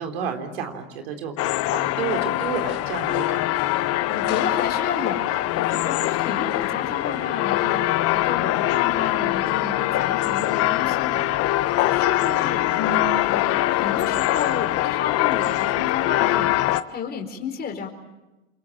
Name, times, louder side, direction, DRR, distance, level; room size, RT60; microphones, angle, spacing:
voice 1, 0.0-1.3 1.7-3.6, right 6 dB, 80° right, 5 dB, 3.6 m, -31 dB
sound 1, 1.4-16.8, left 16 dB, 55° left, 1.2 m, -23 dB
voice 2, 4.1-17.9, left 5 dB, 35° left, 3 dB, 4.5 m, -32 dB
27.5 x 23.0 x 9.0 m, 1.0 s
hypercardioid pair, 90°, 29 cm